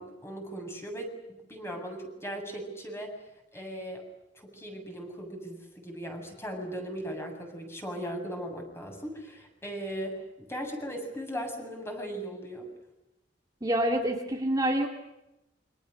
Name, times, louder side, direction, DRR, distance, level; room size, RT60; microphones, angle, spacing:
voice 1, 0.0-3.1 3.5-4.0 4.3-12.7, equal, 15° left, 3 dB, 7.7 m, -38 dB
voice 2, 13.6-14.9, right 1 dB, 20° right, 1 dB, 2.6 m, -27 dB
29.0 x 26.0 x 6.7 m, 0.93 s
head